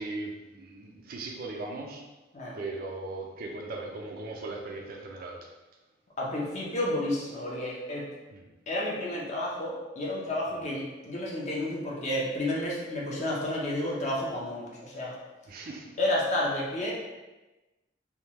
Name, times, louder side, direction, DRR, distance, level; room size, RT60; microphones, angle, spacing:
voice 1, 0.0-2.0 2.5-5.4 8.3-8.4 15.5-15.9, right 2 dB, 55° right, 1 dB, 0.4 m, -38 dB
voice 2, 6.2-8.0 8.7-15.1 16.0-16.9, left 1 dB, 40° left, -4 dB, 0.7 m, -31 dB
3.5 x 2.3 x 2.9 m, 1.1 s
head